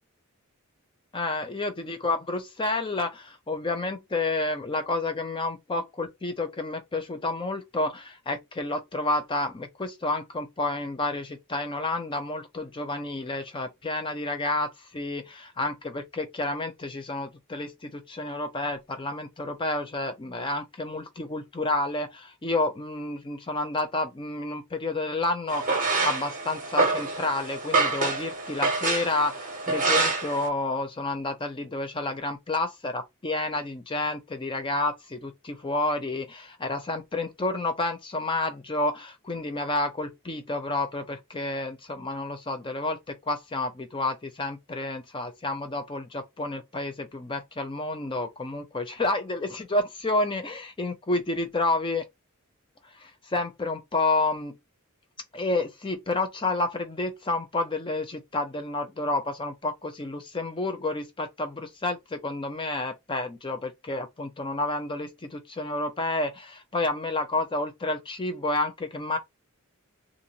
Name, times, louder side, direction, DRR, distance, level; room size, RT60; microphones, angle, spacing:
voice 1, 1.1-52.1 52.9-54.6 55.3-69.2, left 2 dB, 25° left, 0.5 m, -30 dB
sound 1, 25.5-30.5, right 3 dB, 40° right, 1.0 m, -26 dB
2.6 x 2.6 x 2.9 m
head